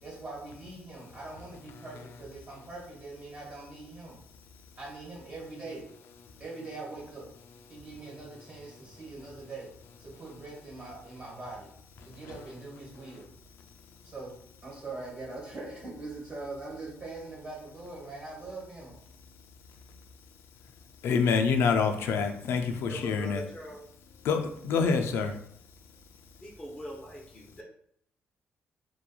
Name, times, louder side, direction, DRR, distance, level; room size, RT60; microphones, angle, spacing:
voice 1, 0.0-4.2 4.8-5.9 6.4-7.3 7.7-9.7 10.0-11.7 12.0-13.3 14.0-14.3 14.6-19.0, right 3 dB, 40° right, -5 dB, 1.2 m, -42 dB
voice 2, 21.0-23.5 24.2-25.3, left 5 dB, 75° left, 6 dB, 0.3 m, -26 dB
voice 3, 22.9-23.8 26.4-27.6, equal, 15° left, -4 dB, 0.6 m, -42 dB
2.9 x 2.2 x 2.3 m, 0.67 s
cardioid pair, 95°, 4 cm